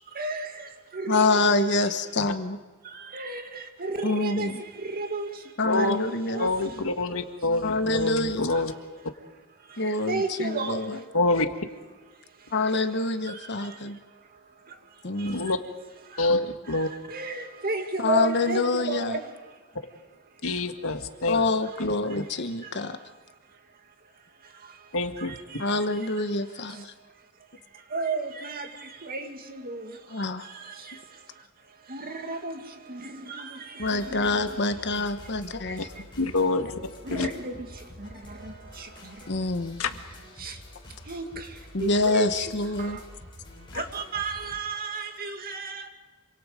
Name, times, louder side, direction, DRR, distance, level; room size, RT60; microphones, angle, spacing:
voice 1, 0.1-1.9 2.8-6.8 7.9-8.1 8.5-8.8 9.6-11.0 12.4-12.5 13.2-15.6 16.1-16.3 16.6-19.6 20.4-20.6 21.7-21.8 22.1-23.1 23.5-23.6 24.4-26.9 27.7-35.3 35.6-36.0 37.0-39.5 40.4-40.6 41.0-43.0 43.7-45.9, right 3 dB, 45° right, 5 dB, 2.3 m, -35 dB
voice 2, 1.1-2.6 4.0-4.6 5.6-6.5 7.6-8.5 9.8-11.0 12.5-14.0 15.0-15.5 18.0-19.2 21.3-23.0 25.6-26.9 30.1-30.4 33.8-35.9 39.3-39.8 41.7-43.0, left 3 dB, 50° left, 9 dB, 1.3 m, -26 dB
voice 3, 5.6-6.0 6.4-8.7 11.1-11.5 15.2-15.6 16.2-16.9 20.4-21.4 22.2-22.3 24.9-25.3 36.2-36.8 37.1-37.3 39.8-39.9 43.7-43.8, left 2 dB, 65° left, 7 dB, 1.7 m, -26 dB
sound 1, 33.8-44.6, equal, 20° left, 7.1 m, -47 dB
27.0 x 25.5 x 5.2 m, 1.4 s
head